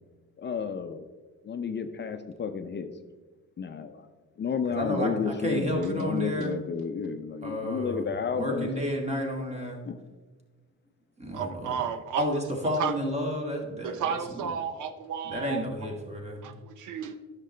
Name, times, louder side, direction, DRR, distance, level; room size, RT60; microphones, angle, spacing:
voice 1, 0.4-1.1 1.4-2.9 3.6-4.1 4.4-8.7 9.8-10.0, left 6 dB, 35° left, 8 dB, 0.6 m, -31 dB
voice 2, 4.7-6.5 7.4-8.1 8.3-9.8 11.2-11.8 12.2-14.4 15.2-16.5, equal, 20° right, 1 dB, 1.9 m, -31 dB
voice 3, 11.3-12.3 12.8-12.9 13.8-15.9 16.4-17.2, right 7 dB, 80° right, 9 dB, 0.6 m, -32 dB
10.0 x 6.6 x 3.3 m, 1.3 s
cardioid pair, 90°, 30 cm